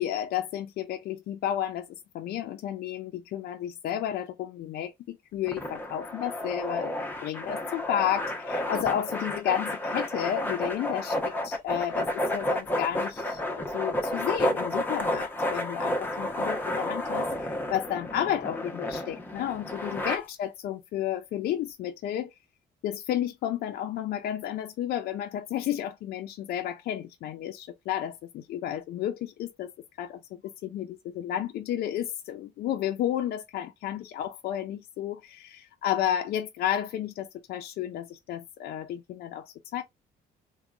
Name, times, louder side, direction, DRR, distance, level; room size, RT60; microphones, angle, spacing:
voice 1, 0.0-1.9 2.1-6.9 7.2-11.2 11.4-22.3 22.8-29.7 30.0-39.8, left 11 dB, 65° left, 0.6 m, -32 dB
sound 1, 5.5-20.2, left 1 dB, 10° left, 0.8 m, -31 dB
3.6 x 2.3 x 3.4 m
cardioid pair, 110°, 17 cm